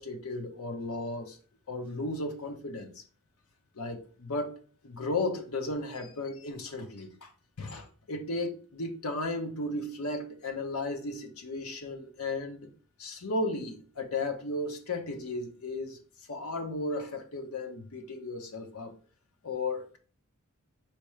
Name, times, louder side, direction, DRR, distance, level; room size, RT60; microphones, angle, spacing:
voice 1, 0.0-1.4 1.7-2.9 3.8-7.3 7.6-12.7 13.0-16.0 16.3-18.9 19.4-20.0, left 2 dB, 90° left, 0.9 m, -35 dB
4.7 x 3.0 x 3.1 m
head